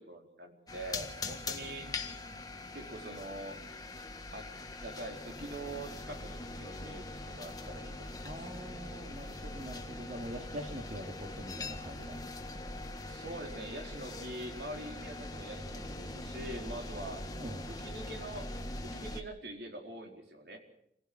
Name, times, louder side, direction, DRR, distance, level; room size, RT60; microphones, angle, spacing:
voice 1, 0.0-1.9 2.7-3.6 4.3-4.5 4.8-8.5 13.0-17.2 17.7-18.5 18.8-20.6, right 1 dB, 60° right, 3 dB, 4.4 m, -44 dB
sound 1, 0.7-19.2, left 2 dB, 20° left, 1.7 m, -42 dB
voice 2, 8.2-12.2 12.5-12.6 17.3-17.6, equal, 40° right, 2 dB, 2.5 m, -44 dB
28.0 x 16.0 x 6.2 m, 0.75 s
head